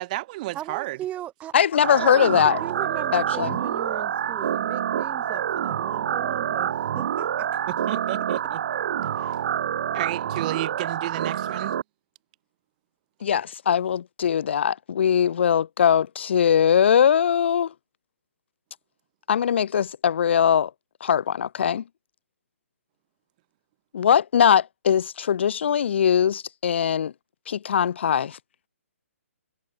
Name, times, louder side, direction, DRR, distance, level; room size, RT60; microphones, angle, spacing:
voice 1, 0.0-1.0 7.7-8.6 9.9-11.8, right 19 dB, 35° right, 3.2 m, -32 dB
voice 2, 0.5-1.5 2.0-7.5, right 12 dB, 20° right, 5.0 m, -37 dB
voice 3, 1.5-2.6 3.1-3.6 13.2-17.7 19.3-20.7 21.0-21.8 23.9-27.1 27.5-28.4, left 8 dB, 55° left, 0.7 m, -21 dB
sound 1, 1.8-11.8, right 9 dB, 50° right, 4.6 m, -27 dB
figure-of-eight pair, 135°, 7 cm